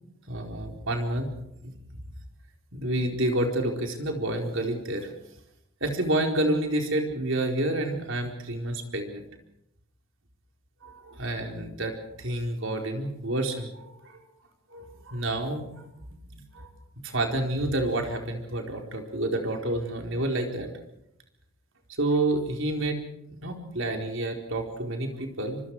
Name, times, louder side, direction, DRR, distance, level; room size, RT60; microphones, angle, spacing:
voice 1, 0.3-1.3 1.6-2.0 2.7-5.1 5.8-9.3 10.8-14.2 14.7-15.9 16.3-16.7 17.0-20.7 22.0-23.0 23.4-25.6, right 1 dB, 65° right, 3 dB, 4.4 m, -29 dB
25.5 x 25.0 x 4.9 m, 0.81 s
head